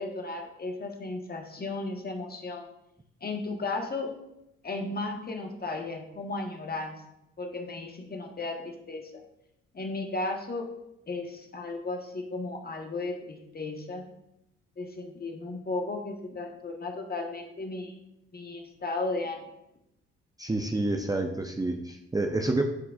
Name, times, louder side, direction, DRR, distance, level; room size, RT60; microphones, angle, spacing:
voice 1, 0.0-2.6 3.2-4.1 4.6-7.0 7.4-9.2 9.7-10.7 11.1-14.0 14.8-18.0 18.3-19.4, left 2 dB, 30° left, 3 dB, 1.3 m, -35 dB
voice 2, 20.4-22.6, right 2 dB, 10° right, 3 dB, 0.7 m, -28 dB
10.5 x 4.7 x 2.4 m, 0.86 s
hypercardioid pair, 45°, 30 cm